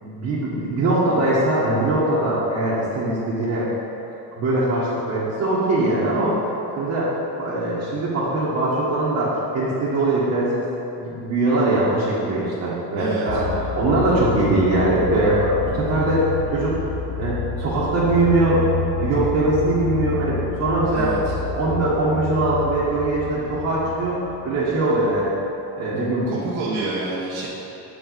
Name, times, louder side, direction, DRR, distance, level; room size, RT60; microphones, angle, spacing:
voice 1, 0.0-3.7 4.3-6.4 6.7-10.7 11.0-13.5 13.8-16.8 17.1-18.6 19.0-21.1 21.5-25.3 25.8-26.3, right 2 dB, 45° right, -10 dB, 1.6 m, -21 dB
voice 2, 13.0-13.3 20.9-21.3 26.3-27.5, right 3 dB, 80° right, -8 dB, 1.5 m, -28 dB
sound 1, 13.3-25.2, left 5 dB, 65° left, 0.8 m, -29 dB
7.8 x 4.8 x 4.1 m, 2.9 s
cardioid pair, 145°, 37 cm